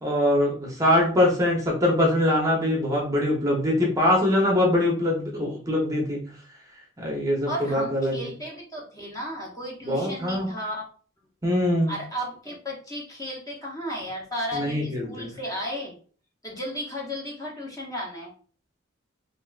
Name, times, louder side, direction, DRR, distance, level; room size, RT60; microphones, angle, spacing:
voice 1, 0.0-6.4 7.0-8.2 9.9-10.5 11.4-12.0 14.5-15.3, left 1 dB, 15° right, -1 dB, 0.7 m, -23 dB
voice 2, 7.5-10.8 11.9-16.0 16.4-18.3, equal, 20° left, -3 dB, 0.7 m, -34 dB
3.4 x 2.5 x 2.3 m, 0.42 s
head